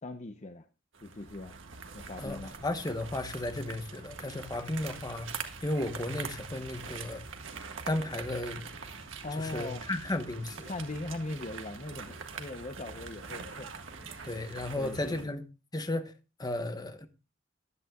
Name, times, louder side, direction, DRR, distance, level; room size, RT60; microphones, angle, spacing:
voice 1, 0.0-0.7 1.0-1.6 1.9-2.5 9.2-9.9 10.6-13.7 14.7-15.3, left 2 dB, 35° left, 0.8 m, -40 dB
sound 1, 0.9-15.3, right 5 dB, 85° right, 1.6 m, -44 dB
voice 2, 2.2-5.3 5.6-7.2 7.9-8.7 9.3-10.7 14.2-15.5 15.7-16.1 16.4-17.1, left 1 dB, 20° left, 1.2 m, -34 dB
15.0 x 11.0 x 2.4 m
head